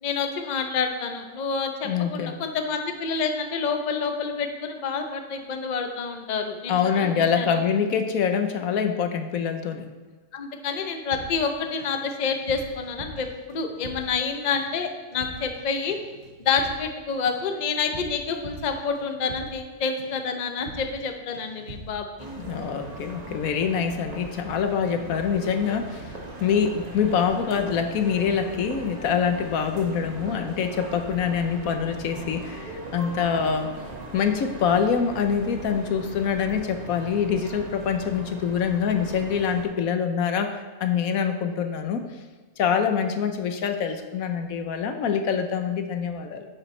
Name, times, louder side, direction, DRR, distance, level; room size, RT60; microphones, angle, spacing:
voice 1, 0.0-7.6 10.3-16.0 16.4-22.1 29.9-30.0, left 5 dB, 40° left, 5 dB, 0.7 m, -28 dB
voice 2, 1.8-2.3 6.7-9.9 22.4-26.0 26.4-33.7 34.1-42.0 42.6-46.5, left 7 dB, 80° left, 6 dB, 1.2 m, -25 dB
sound 1, 11.1-12.0 12.3-14.3 14.5-14.8 15.1-15.6 15.9-19.7 20.0-20.3 20.6-21.1 21.3-22.0, right 2 dB, 70° right, 2.4 m, -43 dB
sound 2, 22.2-39.7, right 2 dB, 30° right, 1.4 m, -39 dB
10.0 x 7.9 x 3.2 m, 1.3 s
omnidirectional pair, 1.5 m